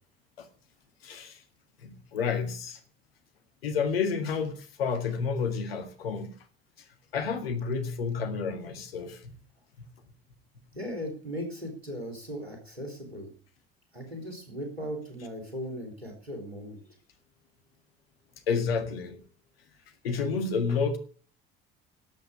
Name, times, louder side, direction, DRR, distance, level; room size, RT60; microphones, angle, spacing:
voice 1, 1.0-1.4 1.8-2.8 3.6-6.4 7.1-9.3 9.8-9.9 18.5-19.2 20.0-21.0, left 5 dB, 75° left, 1.8 m, -30 dB
voice 2, 10.7-13.3 13.9-16.9, equal, 90° right, 3.6 m, -38 dB
11.5 x 8.0 x 8.7 m
figure-of-eight pair, 55°, 30 cm